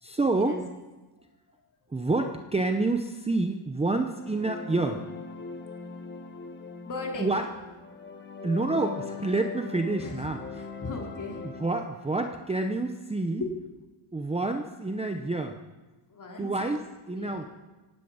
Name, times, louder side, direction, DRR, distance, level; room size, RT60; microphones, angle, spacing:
voice 1, 0.0-0.6 1.9-5.0 7.2-7.5 8.4-10.6 11.4-13.4 14.1-15.6 16.4-17.5, right 2 dB, 10° right, 5 dB, 0.8 m, -28 dB
sound 1, 4.0-11.9, left 4 dB, 20° left, 1.4 m, -41 dB
voice 2, 6.8-7.3 10.0-10.1 10.5-11.4 13.4-13.5 16.1-16.7 17.1-17.4, left 3 dB, 40° left, 0 dB, 3.9 m, -37 dB
16.5 x 10.0 x 8.7 m, 1.2 s
cardioid pair, 140°, 50 cm